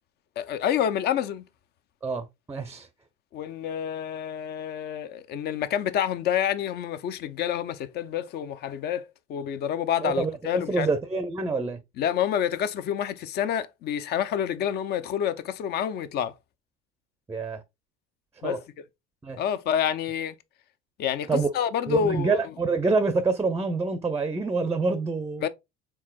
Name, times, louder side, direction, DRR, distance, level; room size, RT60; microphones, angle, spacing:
voice 1, 0.4-1.4 3.3-9.0 9.3-10.9 12.0-16.3 18.4-18.6 19.4-20.4 21.0-22.4 25.4-25.5, left 9 dB, 55° left, 0.6 m, -28 dB
voice 2, 2.0-2.9 10.0-11.8 17.3-17.6 18.4-18.6 19.2-19.4 21.3-21.5 21.9-25.5, right 4 dB, 10° right, 0.5 m, -26 dB
4.7 x 3.7 x 2.3 m
cardioid pair, 115°, 21 cm